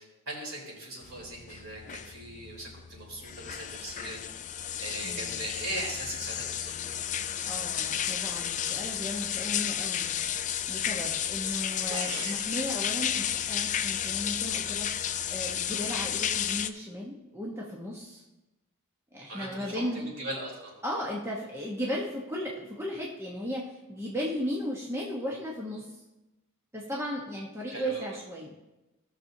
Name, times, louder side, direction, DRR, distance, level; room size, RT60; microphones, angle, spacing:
voice 1, 0.0-4.4 4.8-6.7 19.3-20.7 27.7-28.2, right 1 dB, 60° right, -3 dB, 3.6 m, -39 dB
sound 1, 1.0-16.7, left 10 dB, 35° left, 0.4 m, -32 dB
voice 2, 5.0-5.4 7.4-10.1 10.7-14.9 15.3-18.2 19.1-20.0 20.8-25.9 26.7-28.5, equal, 10° right, -4 dB, 1.0 m, -35 dB
sound 2, 11.9-12.5, right 3 dB, 85° right, 1.1 m, -37 dB
17.5 x 6.6 x 2.7 m, 1.0 s
head